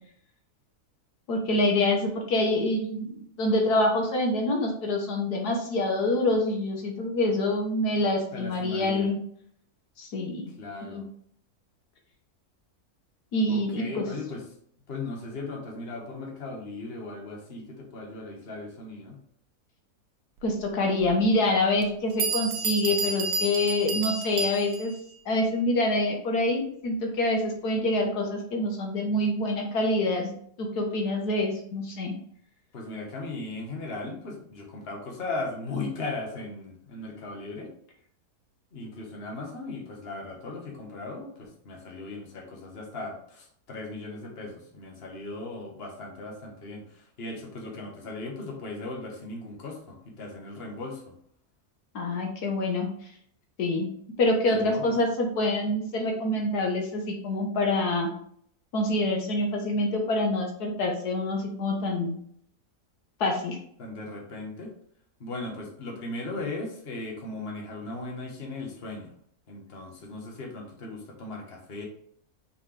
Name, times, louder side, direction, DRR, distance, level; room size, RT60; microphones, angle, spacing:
voice 1, 1.3-9.2 10.0-10.5 10.9-11.0 13.3-14.0 20.4-24.9 25.2-30.3 30.6-32.1 51.9-52.9 53.6-53.9 54.2-58.1 58.7-62.1 63.2-63.6, left 1 dB, 80° left, 2 dB, 1.6 m, -26 dB
voice 2, 8.3-9.1 10.6-11.0 13.5-14.4 14.9-19.2 32.7-37.7 38.7-51.1 54.5-54.9 63.8-64.7 65.2-69.1 69.5-71.8, left 2 dB, 40° left, 0 dB, 1.6 m, -37 dB
Bell, 21.0-21.1 21.8-21.9 22.2-25.0, right 3 dB, 75° right, 1.3 m, -30 dB
5.7 x 5.1 x 3.3 m, 0.64 s
omnidirectional pair, 1.7 m